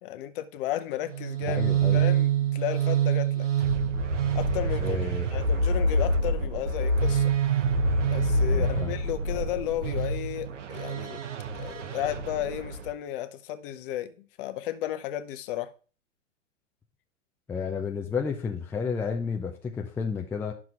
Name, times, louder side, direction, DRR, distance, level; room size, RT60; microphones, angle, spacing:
voice 1, 0.0-3.5 4.3-5.0 5.3-7.3 8.1-11.2 11.6-15.7, left 12 dB, 45° left, 0.8 m, -33 dB
sound 1, 1.1-12.9, right 4 dB, 75° right, 1.1 m, -26 dB
voice 2, 1.5-2.0 4.8-5.3 8.5-8.9 9.3-9.4 17.5-20.5, left 5 dB, 5° left, 0.4 m, -31 dB
10.5 x 6.0 x 2.5 m
hypercardioid pair, 115°, 37 cm